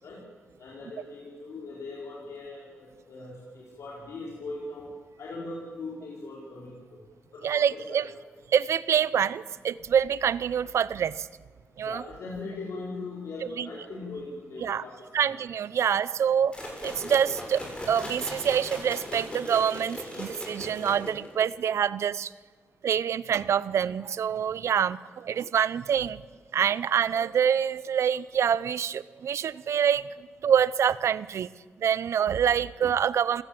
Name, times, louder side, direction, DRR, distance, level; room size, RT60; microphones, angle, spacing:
voice 1, 0.6-4.9 5.2-7.0 7.3-8.0 11.8-15.3, left 3 dB, 85° left, -4 dB, 4.5 m, -40 dB
voice 2, 7.4-8.0 8.5-11.3 11.8-12.0 13.6-13.7 14.6-14.8 15.1-16.5 16.8-22.3 22.8-26.2 26.5-30.0 30.4-31.5 31.8-33.4, right 8 dB, 85° right, 18 dB, 0.7 m, -26 dB
sound 1, 16.5-21.4, left 1 dB, 20° left, 7.3 m, -38 dB
27.0 x 16.5 x 7.7 m, 1.5 s
wide cardioid pair, 115°, 5 cm